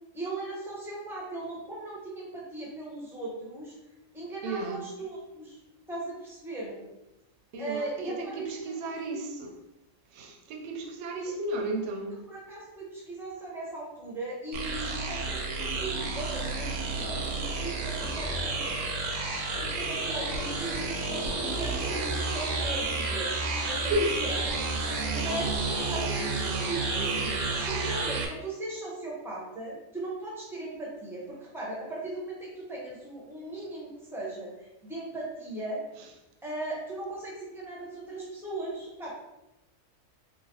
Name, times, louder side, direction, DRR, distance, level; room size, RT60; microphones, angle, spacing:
voice 1, 0.1-3.7 4.1-5.6 5.9-6.8 7.6-8.8 9.1-9.2 12.3-16.7 17.0-18.7 19.5-23.9 24.2-24.4 24.8-35.8 36.4-39.2, right 2 dB, 5° right, -5 dB, 0.3 m, -38 dB
voice 2, 4.4-4.9 7.5-9.5 10.1-12.2 23.9-24.2 36.0-36.1, right 1 dB, 65° right, 2 dB, 0.7 m, -33 dB
sound 1, 14.5-28.3, right 3 dB, 85° right, 1.1 m, -31 dB
3.0 x 2.5 x 2.7 m, 0.93 s
omnidirectional pair, 1.5 m